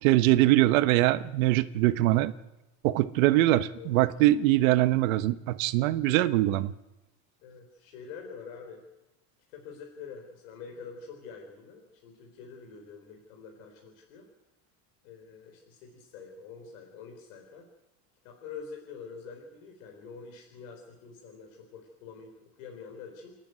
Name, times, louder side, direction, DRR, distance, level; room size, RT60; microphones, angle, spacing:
voice 1, 0.0-2.3 2.8-6.7, right 16 dB, 85° right, 12 dB, 1.2 m, -23 dB
voice 2, 7.4-8.8 9.5-14.3 15.0-17.7 18.2-23.4, left 5 dB, 80° left, 2 dB, 4.2 m, -46 dB
28.5 x 10.5 x 9.3 m, 0.97 s
cardioid pair, 170°, 39 cm